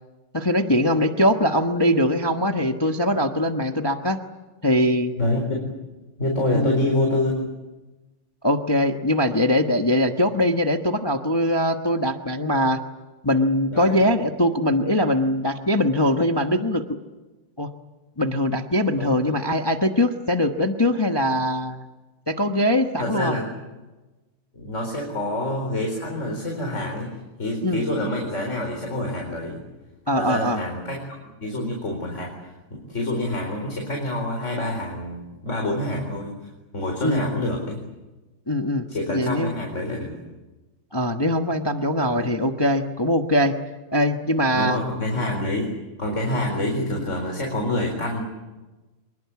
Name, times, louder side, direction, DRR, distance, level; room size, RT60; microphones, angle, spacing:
voice 1, 0.3-4.2 4.6-5.1 6.5-6.8 8.4-12.8 13.2-17.0 17.6-17.7 18.2-21.8 22.3-23.4 27.6-27.8 30.1-30.6 37.0-37.3 38.5-39.6 40.9-43.6 43.9-44.8, left 1 dB, 15° left, 5 dB, 1.0 m, -22 dB
voice 2, 5.2-5.7 6.2-7.4 13.7-14.0 19.0-19.3 23.0-23.5 24.5-27.1 27.4-29.6 30.2-36.3 36.7-37.8 38.9-40.2 42.2-42.3 44.5-45.7 46.0-48.2, left 1 dB, 35° left, 1 dB, 4.7 m, -27 dB
26.5 x 22.0 x 8.5 m, 1.1 s
omnidirectional pair, 2.2 m